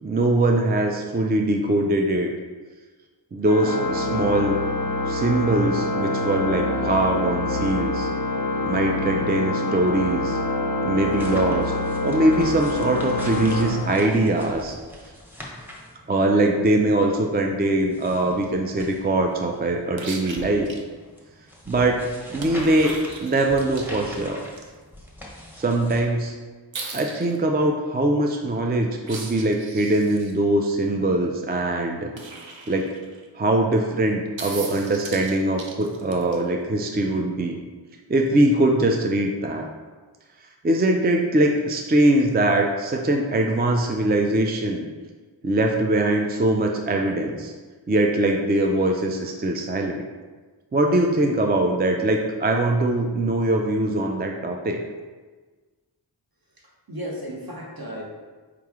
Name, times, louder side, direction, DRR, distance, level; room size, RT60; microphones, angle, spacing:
voice 1, 0.0-2.3 3.3-4.6 5.1-8.1 8.6-10.4 10.8-11.7 12.0-14.8 16.1-20.7 21.7-22.9 23.2-24.4 25.5-26.3 26.9-32.1 32.7-32.9 33.3-37.6 38.1-39.7 40.6-44.9 45.4-47.5 47.9-50.0 50.7-54.8, right 1 dB, 25° right, 2 dB, 0.3 m, -22 dB
Organ, 3.5-14.6, left 2 dB, 45° left, 0.5 m, -26 dB
sound 1, 10.9-26.0, left 1 dB, 5° right, 0.9 m, -42 dB
sound 2, 20.0-20.8 22.4-24.6 26.7-27.4 29.0-30.3 32.2-33.3 34.4-36.4 38.3-38.4, right 4 dB, 80° right, 0.6 m, -38 dB
voice 2, 56.6-58.0, equal, 50° right, -2 dB, 1.0 m, -35 dB
4.8 x 3.1 x 3.5 m, 1.4 s
wide cardioid pair, 40°, 45 cm